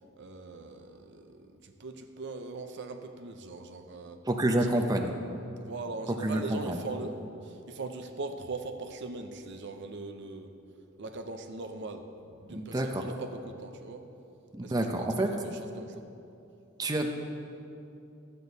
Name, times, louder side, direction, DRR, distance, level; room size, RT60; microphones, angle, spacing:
voice 1, 0.2-4.2 4.5-4.9 5.6-10.5 11.0-14.1 14.6-16.0, right 3 dB, 60° right, 6 dB, 0.7 m, -41 dB
voice 2, 4.3-5.1 6.2-6.8 12.6-13.0 14.5-15.3 16.8-17.1, right 1 dB, 20° right, 3 dB, 0.6 m, -28 dB
13.0 x 8.2 x 4.0 m, 2.7 s
head